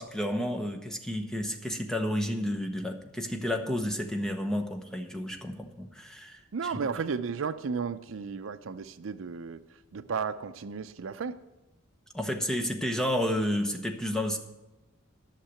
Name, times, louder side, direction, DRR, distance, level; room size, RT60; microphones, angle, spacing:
voice 1, 0.0-6.4 12.1-14.4, left 1 dB, 5° left, 4 dB, 0.9 m, -31 dB
voice 2, 6.5-9.6 9.9-11.4, right 5 dB, 70° right, 12 dB, 0.5 m, -34 dB
11.5 x 6.6 x 7.7 m, 1.0 s
head